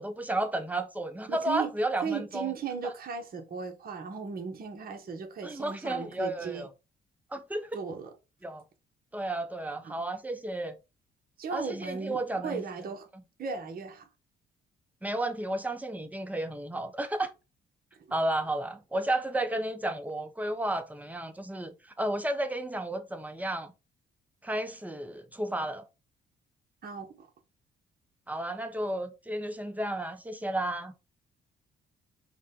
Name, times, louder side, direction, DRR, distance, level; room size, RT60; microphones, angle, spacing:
voice 1, 0.0-2.5 2.8-2.9 5.4-6.7 7.3-7.8 8.4-8.6 9.1-10.8 11.5-12.6 15.0-17.3 18.1-23.7 24.4-25.9 28.3-30.9, right 1 dB, 10° right, 0.6 m, -32 dB
voice 2, 1.3-1.7 2.0-6.7 7.7-8.1 9.8-10.0 11.4-13.1 13.4-14.1 17.9-18.0 26.8-27.3, right 5 dB, 50° right, 0.9 m, -36 dB
4.8 x 2.2 x 3.6 m
cardioid pair, 90°, 20 cm